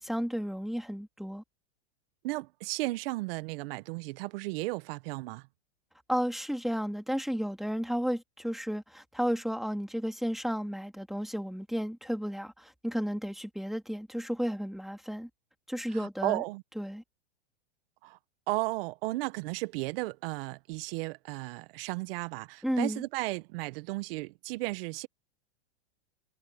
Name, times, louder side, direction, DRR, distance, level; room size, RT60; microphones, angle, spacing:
voice 1, 0.0-1.4 6.1-15.3 15.7-16.4 16.8-17.0 22.6-23.0, equal, ahead, 3.3 m, -33 dB
voice 2, 2.2-5.5 15.9-16.6 18.0-18.2 18.5-25.1, right 22 dB, 55° right, 1.5 m, -34 dB
hypercardioid pair, 125°, 35 cm